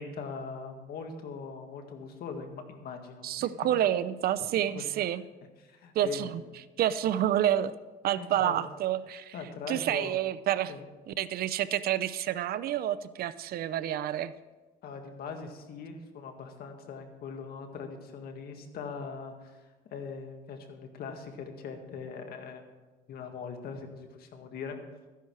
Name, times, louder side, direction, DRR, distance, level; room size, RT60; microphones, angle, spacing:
voice 1, 0.0-3.5 4.4-4.5 4.7-4.9 5.6-6.3 7.1-7.2 8.1-8.6 9.3-10.2 10.7-10.8 14.8-22.6 23.1-24.8, left 5 dB, 65° left, 5 dB, 1.9 m, -41 dB
voice 2, 3.2-5.2 5.9-6.4 6.8-7.7 8.0-9.3 9.7-10.7 11.1-14.3, right 11 dB, 65° right, 15 dB, 0.6 m, -29 dB
13.5 x 10.5 x 4.7 m, 1.2 s
cardioid pair, 110°, 17 cm